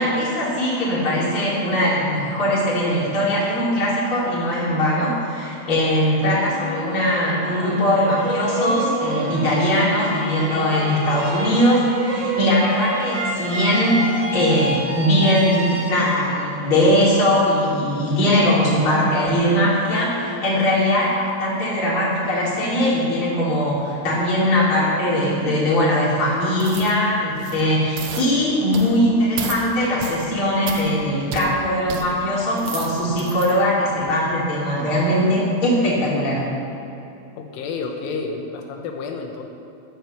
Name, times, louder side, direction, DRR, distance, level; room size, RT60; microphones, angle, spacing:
voice 1, 0.0-36.5, equal, 30° left, -7 dB, 4.1 m, -20 dB
sound 1, 6.2-17.2, right 2 dB, 40° right, 1.7 m, -29 dB
sound 2, 26.6-27.0 27.3-27.6 28.0-28.3 28.7-29.0 29.4-29.6 30.0-30.3 30.7-30.9 31.3-31.5 31.9-32.1 32.5-33.5 34.0-34.1, right 7 dB, 75° right, 2.4 m, -32 dB
voice 2, 37.4-39.4, left 4 dB, 85° left, 3 dB, 3.6 m, -30 dB
13.5 x 10.5 x 6.9 m, 2.8 s
omnidirectional pair, 5.5 m